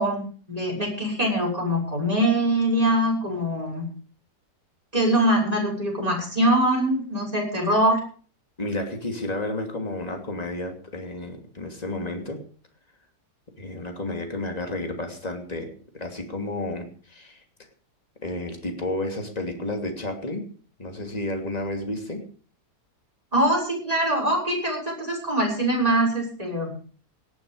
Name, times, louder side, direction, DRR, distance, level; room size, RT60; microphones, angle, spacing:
voice 1, 0.0-3.9 4.9-8.0 23.3-26.7, right 1 dB, 20° right, 1 dB, 6.3 m, -23 dB
voice 2, 8.6-12.4 13.6-17.4 18.2-20.5 20.8-22.2, left 1 dB, 20° left, 4 dB, 2.9 m, -31 dB
18.0 x 11.5 x 5.1 m, 0.41 s
omnidirectional pair, 1.9 m